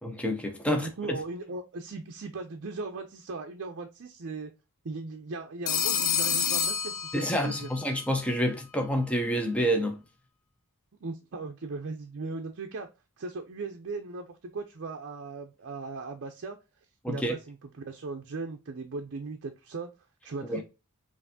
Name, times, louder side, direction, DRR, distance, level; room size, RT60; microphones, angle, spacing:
voice 1, 0.0-0.9 7.1-10.0 17.0-17.4 20.5-20.6, equal, 5° left, 0.6 m, -28 dB
voice 2, 0.7-4.5 4.8-7.7 11.0-12.9 13.2-16.6 17.1-19.9 20.2-20.6, right 3 dB, 55° right, 0.5 m, -38 dB
Telephone, 5.7-7.7, left 7 dB, 65° left, 1.0 m, -28 dB
5.6 x 2.6 x 2.6 m
head